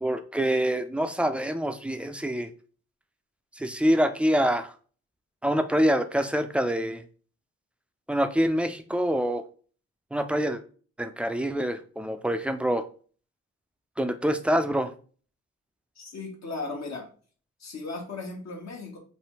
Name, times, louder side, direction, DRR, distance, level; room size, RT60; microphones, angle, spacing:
voice 1, 0.0-2.5 3.6-4.7 5.4-7.0 8.1-9.4 10.1-10.6 11.0-12.9 14.0-14.9, equal, 5° right, 8 dB, 0.4 m, -25 dB
voice 2, 16.0-17.1 17.6-19.0, left 3 dB, 65° left, 0 dB, 1.2 m, -36 dB
3.3 x 2.2 x 2.9 m, 0.41 s
supercardioid pair, 45°, 29 cm